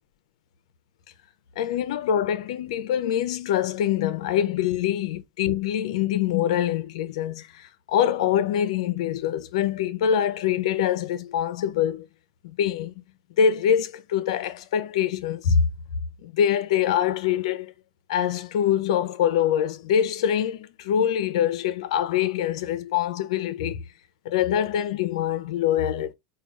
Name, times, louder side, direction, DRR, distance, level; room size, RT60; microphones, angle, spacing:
voice 1, 1.6-12.1 12.4-12.9 13.4-15.7 16.2-17.7 18.1-23.8 24.2-26.1, left 9 dB, 75° left, 0.6 m, -24 dB
4.8 x 2.3 x 3.2 m
supercardioid pair, 135°, 3 cm